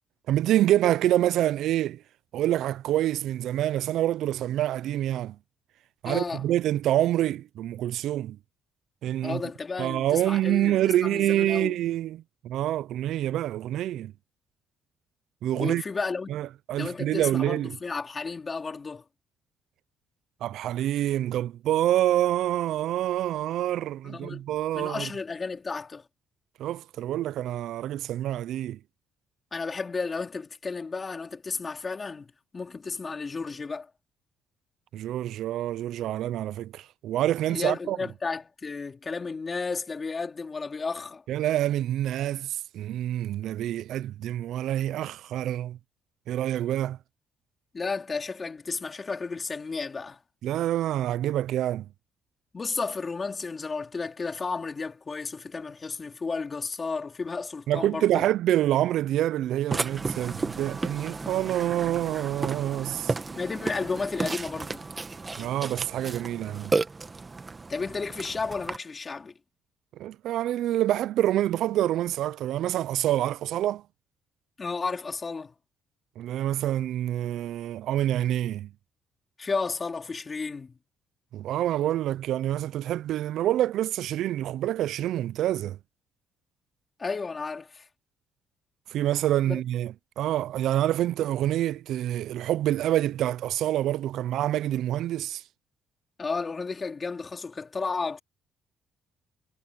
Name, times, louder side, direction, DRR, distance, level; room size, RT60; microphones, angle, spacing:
voice 1, 0.3-2.0 2.3-5.4 6.0-8.4 9.0-9.4 9.8-14.1 15.4-15.8 16.3-17.8 20.4-25.1 26.6-28.8 34.9-38.0 41.3-45.8 46.3-47.0 50.4-51.9 57.7-63.1 65.4-66.8 70.0-73.8 76.2-78.7 81.3-85.8 88.9-95.4, right 13 dB, 70° right, 0.3 m, -27 dB
voice 2, 6.0-6.5 9.2-11.8 15.5-16.3 16.8-19.0 24.0-24.5 24.7-26.1 29.5-33.9 37.5-41.2 47.7-50.2 52.5-58.3 63.3-64.9 67.7-69.3 74.6-75.6 79.4-80.8 87.0-87.9 89.4-89.6 96.2-98.2, left 4 dB, 25° left, 3.8 m, -33 dB
Burping eructation, 59.7-68.8, right 3 dB, 20° right, 1.1 m, -33 dB
cardioid pair, 150°, 0 cm